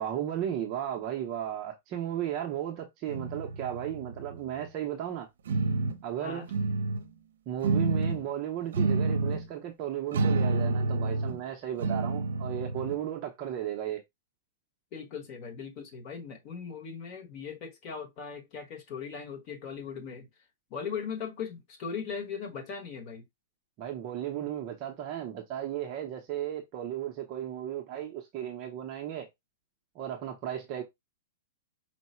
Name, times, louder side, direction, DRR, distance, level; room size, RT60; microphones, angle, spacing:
voice 1, 0.0-5.3 6.0-6.5 7.5-14.0 23.8-29.3 29.9-30.8, right 11 dB, 30° right, 0.6 m, -35 dB
sound 1, 3.1-4.7 5.5-6.0 6.5-7.0 7.6-8.2 8.7-9.5 10.1-11.4 11.8-13.0, right 3 dB, 80° right, 0.6 m, -29 dB
voice 2, 14.9-20.3 20.7-23.3, left 6 dB, 30° left, 1.1 m, -39 dB
4.6 x 2.0 x 4.2 m
supercardioid pair, 170°, 0 cm